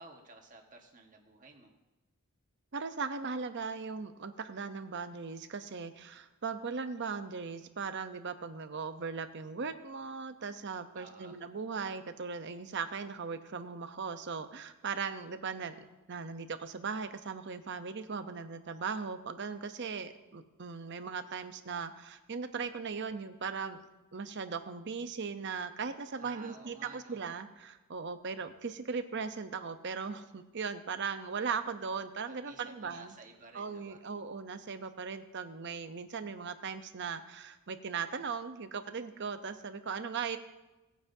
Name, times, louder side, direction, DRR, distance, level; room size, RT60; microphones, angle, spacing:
voice 1, 0.0-1.7 10.9-11.3 26.1-27.2 32.3-34.0, right 3 dB, 35° right, 2 dB, 1.4 m, -53 dB
voice 2, 2.7-23.8 24.1-33.1 33.5-40.4, right 5 dB, 50° right, 10 dB, 0.7 m, -38 dB
18.5 x 9.1 x 2.7 m, 1.1 s
head